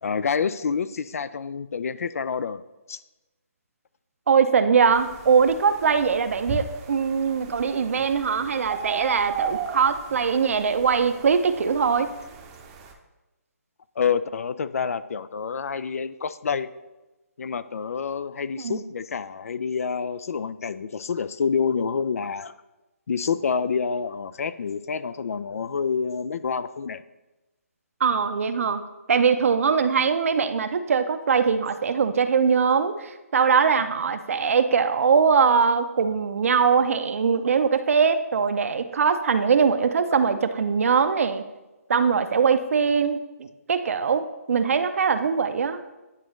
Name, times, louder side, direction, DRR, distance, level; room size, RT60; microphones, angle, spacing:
voice 1, 0.0-2.6 2.9-3.0 14.0-16.7 17.4-22.6 23.1-27.0, left 6 dB, 70° left, 15 dB, 0.4 m, -27 dB
voice 2, 4.3-12.1 18.6-18.8 28.0-28.8 29.1-41.4 41.9-45.8, right 6 dB, 60° right, 10 dB, 0.6 m, -22 dB
sound 1, 4.9-12.9, right 6 dB, 25° right, 0.7 m, -36 dB
9.7 x 3.9 x 3.1 m, 1.1 s
hypercardioid pair, 150°, 8 cm